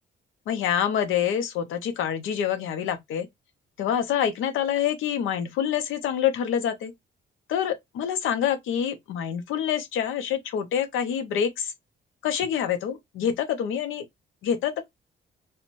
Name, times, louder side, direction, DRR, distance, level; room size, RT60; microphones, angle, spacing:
voice 1, 0.5-3.3 3.8-6.9 7.5-11.7 12.2-14.0 14.4-14.7, left 9 dB, 80° left, 0.6 m, -26 dB
2.9 x 2.1 x 2.5 m
cardioid pair, 90°, 20 cm